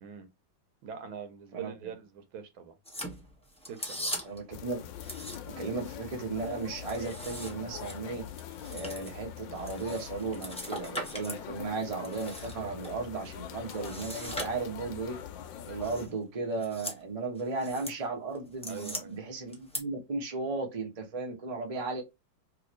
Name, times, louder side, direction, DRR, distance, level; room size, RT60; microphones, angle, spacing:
voice 1, 0.8-2.8 3.7-4.2 18.6-19.2, right 7 dB, 85° right, 1.7 m, -43 dB
sound 1, 2.8-4.5 5.0-5.7 6.1-11.4 11.8-12.9 13.7-15.0 15.8-16.1 16.5-17.0 17.4-18.0 18.3-19.0 19.5-19.8, equal, 5° left, 0.5 m, -40 dB
voice 2, 4.2-4.8 5.2-8.2 8.7-15.2 15.6-22.0, right 3 dB, 30° right, 0.7 m, -35 dB
sound 2, 4.5-16.1, left 10 dB, 75° left, 1.2 m, -43 dB
3.4 x 3.0 x 3.1 m
omnidirectional pair, 2.2 m